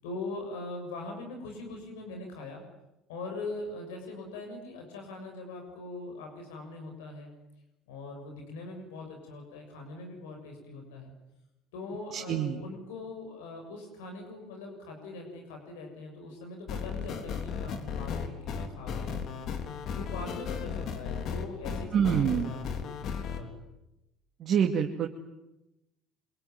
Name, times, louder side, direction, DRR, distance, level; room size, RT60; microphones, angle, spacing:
voice 1, 0.0-2.6 3.1-7.3 7.9-11.1 11.7-19.3 19.9-23.6, left 2 dB, 80° left, 3 dB, 7.0 m, -42 dB
voice 2, 12.1-12.6 21.9-22.5 24.4-25.1, right 8 dB, 50° right, 2 dB, 2.4 m, -26 dB
sound 1, 16.7-23.4, left 6 dB, 55° left, 3.7 m, -35 dB
26.5 x 23.0 x 9.6 m, 0.92 s
hypercardioid pair, 70°, 0 cm